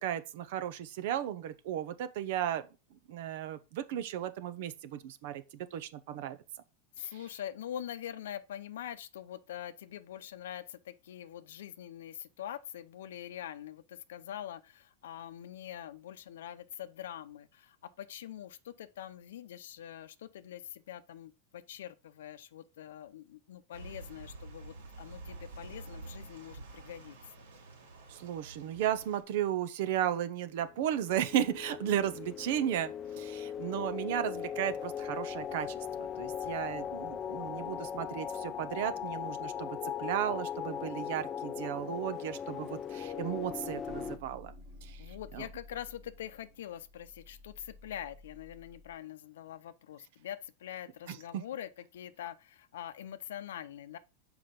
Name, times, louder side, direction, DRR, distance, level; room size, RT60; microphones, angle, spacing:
voice 1, 0.0-2.6 3.1-6.4 7.0-7.1 28.1-44.5 44.8-45.5 51.1-51.4, right 10 dB, 65° right, 0.8 m, -35 dB
voice 2, 7.0-27.5 45.0-54.0, left 10 dB, 85° left, 0.6 m, -44 dB
sound 1, 23.7-29.2, right 3 dB, 85° right, 3.3 m, -48 dB
sound 2, 30.8-44.2, left 8 dB, 25° left, 0.6 m, -39 dB
sound 3, 43.9-49.0, left 2 dB, 20° right, 1.0 m, -53 dB
5.8 x 4.9 x 5.2 m
supercardioid pair, 135°, 0 cm